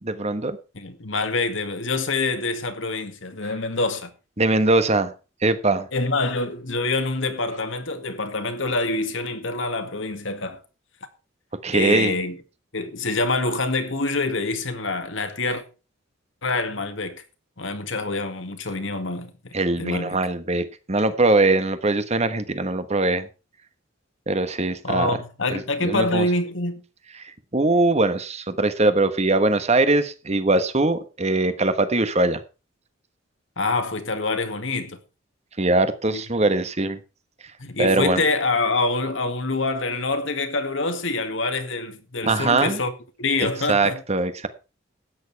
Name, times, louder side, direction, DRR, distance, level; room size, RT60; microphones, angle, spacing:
voice 1, 0.0-0.6 4.4-5.1 5.4-5.9 11.6-12.2 19.5-23.3 24.3-25.1 25.5-26.2 27.2-32.4 35.6-37.0 37.8-38.2 42.2-42.8 43.4-44.5, right 2 dB, 35° right, 1.3 m, -21 dB
voice 2, 0.7-4.1 5.9-10.6 11.7-12.4 12.7-15.6 16.4-17.2 17.6-19.3 19.8-20.2 24.8-26.8 33.6-35.0 36.1-36.2 37.6-42.9 43.2-44.0, left 3 dB, 70° left, 2.0 m, -26 dB
13.5 x 9.4 x 4.7 m
head